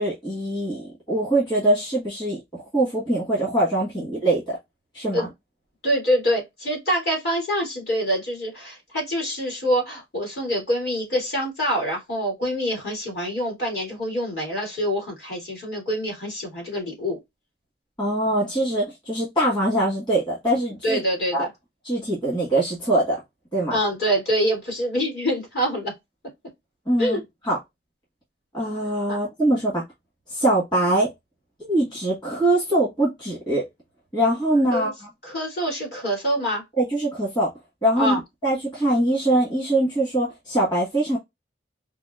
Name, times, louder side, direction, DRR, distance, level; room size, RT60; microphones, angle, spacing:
voice 1, 0.0-4.6 4.9-5.3 18.0-21.0 21.3-21.5 21.8-23.2 23.5-23.8 26.9-27.2 27.4-27.6 28.5-29.8 30.3-31.1 31.6-33.6 34.1-34.9 36.8-37.5 37.8-38.1 38.4-41.2, right 1 dB, 25° left, 1.5 m, -23 dB
voice 2, 5.8-17.2 20.8-21.5 23.7-25.9 27.0-27.2 29.1-29.2 34.7-34.9 35.2-36.6 38.0-38.2, equal, 60° left, 2.7 m, -25 dB
5.0 x 2.6 x 2.4 m
head